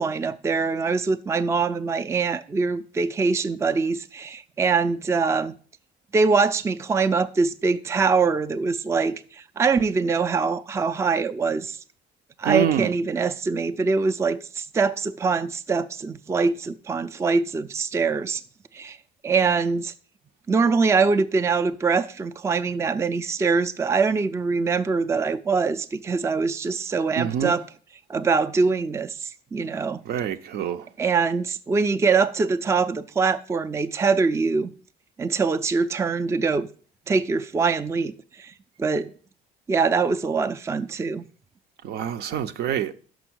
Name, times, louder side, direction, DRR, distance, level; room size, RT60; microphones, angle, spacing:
voice 1, 0.0-5.5 6.1-9.1 9.6-11.8 12.4-18.4 18.7-19.0 19.2-19.9 20.5-27.6 28.1-30.0 31.0-34.7 35.2-36.7 37.1-38.1 38.4-38.5 38.8-39.1 39.7-41.2, right 4 dB, 15° right, 0.4 m, -23 dB
voice 2, 12.4-12.9 27.1-27.5 30.1-30.8 41.8-42.9, right 9 dB, 70° right, 0.6 m, -26 dB
6.1 x 5.4 x 6.2 m
cardioid pair, 110°, 17 cm